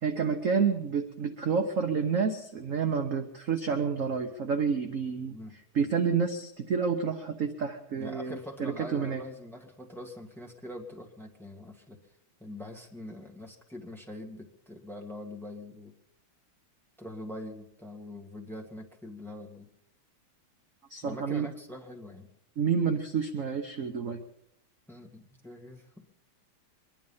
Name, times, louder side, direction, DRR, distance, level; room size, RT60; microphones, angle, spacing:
voice 1, 0.0-5.4 5.7-9.2 20.9-21.5 22.6-24.2, right 6 dB, 50° right, 6 dB, 1.0 m, -29 dB
voice 2, 8.0-12.0 12.4-15.9 17.0-19.7 21.0-22.3 24.9-26.0, left 1 dB, ahead, 2 dB, 1.6 m, -43 dB
23.0 x 11.0 x 5.5 m, 0.76 s
omnidirectional pair, 2.3 m